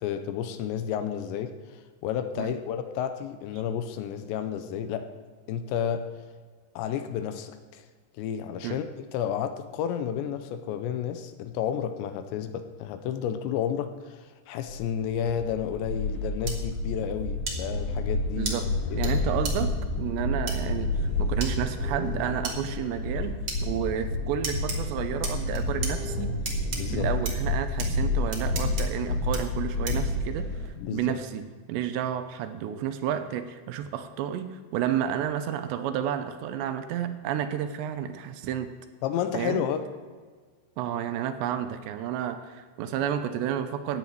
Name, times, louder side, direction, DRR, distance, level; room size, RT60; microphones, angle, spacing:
voice 1, 0.0-1.5 2.0-5.1 5.5-6.1 6.8-7.8 8.2-8.8 9.1-18.5 18.9-19.2 26.7-27.1 30.8-31.2 39.0-39.8, left 9 dB, 90° left, 9 dB, 2.9 m, -31 dB
sound 1, 14.7-30.7, left 2 dB, 50° left, 2.2 m, -29 dB
sound 2, 16.5-16.6 17.5-17.6 18.5-18.6 19.0-19.1 19.4-19.5 20.5-20.6 21.4-21.5 22.4-22.6 23.5-23.6 24.4-24.8 25.2-25.9 26.5-26.8 27.3-27.4 27.8-27.9 28.3-28.8 29.3-29.4 29.9-30.1, right 4 dB, 70° right, 1.1 m, -33 dB
voice 2, 18.4-23.4 23.6-26.3 26.9-38.7 39.3-39.7 40.8-44.0, right 9 dB, 85° right, 9 dB, 2.8 m, -31 dB
14.0 x 9.6 x 4.7 m, 1.5 s
omnidirectional pair, 5.2 m